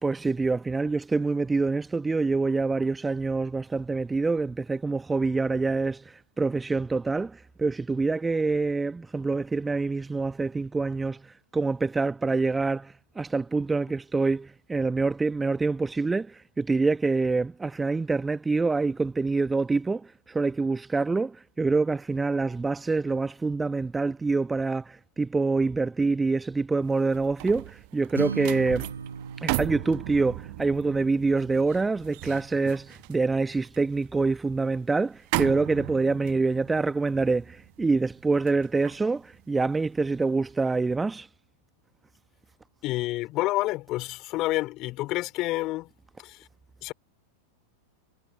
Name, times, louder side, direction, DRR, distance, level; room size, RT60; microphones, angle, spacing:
voice 1, 0.0-28.9 29.4-41.3, right 3 dB, 10° right, 1.1 m, -26 dB
sound 1, 26.9-40.2 40.6-40.9, right 37 dB, 45° right, 1.0 m, -37 dB
Acoustic guitar, 28.1-32.4, right 6 dB, 75° right, 7.5 m, -38 dB
voice 2, 42.8-45.9 46.2-46.4 46.8-46.9, left 18 dB, 40° left, 3.3 m, -29 dB
figure-of-eight pair, 90°, 0 cm